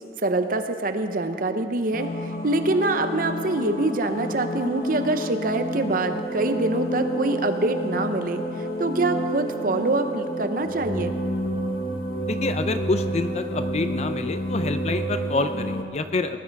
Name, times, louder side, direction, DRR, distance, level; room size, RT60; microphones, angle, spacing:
voice 1, 0.2-8.4 8.8-11.2, right 2 dB, 50° right, 8 dB, 0.8 m, -25 dB
sound 1, 1.9-15.8, equal, 55° left, 1.1 m, -29 dB
voice 2, 12.3-16.4, left 3 dB, 40° left, 9 dB, 0.5 m, -27 dB
19.0 x 9.9 x 4.7 m, 2.5 s
head